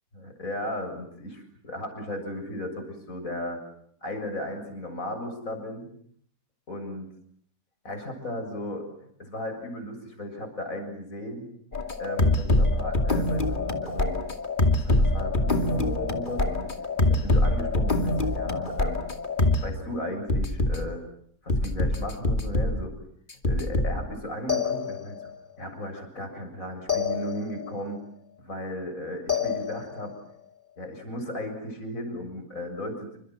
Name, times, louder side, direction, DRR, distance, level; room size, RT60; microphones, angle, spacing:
voice 1, 0.1-3.6 4.0-5.9 6.7-7.1 7.8-8.9 9.2-11.5 12.0-14.2 14.7-16.7 17.1-19.0 19.6-21.0 21.4-22.9 23.5-25.2 25.6-28.0 28.4-30.1 30.8-33.1, left 1 dB, 55° left, 5 dB, 7.6 m, -35 dB
sound 1, 11.7-19.7 20.3-20.8 21.5-22.9 23.3-24.1 24.5-25.3 26.9-27.7 29.3-30.1, left 2 dB, 30° left, 2.6 m, -25 dB
29.5 x 26.0 x 7.8 m, 0.65 s
omnidirectional pair, 1.7 m